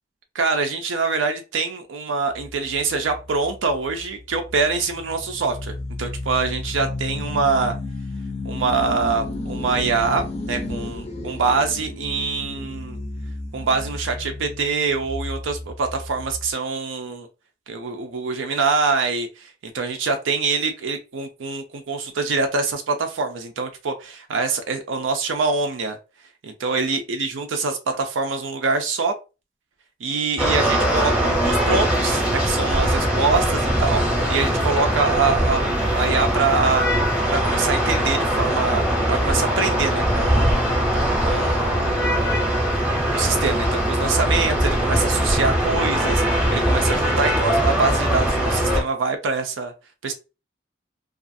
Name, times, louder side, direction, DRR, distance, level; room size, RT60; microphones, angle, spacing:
voice 1, 0.3-7.7 8.4-10.2 10.5-13.0 13.5-17.3 17.7-26.0 26.4-29.1 30.0-34.0 34.3-36.9 37.3-38.8 39.1-40.7 41.2-42.4 43.1-49.7 50.0-50.1, right 4 dB, 85° right, 5 dB, 0.5 m, -24 dB
sound 1, 2.4-16.5, left 2 dB, 30° left, 0.4 m, -33 dB
sound 2, 30.4-48.8, equal, 5° right, 0.7 m, -21 dB
2.4 x 2.4 x 2.6 m, 0.30 s
head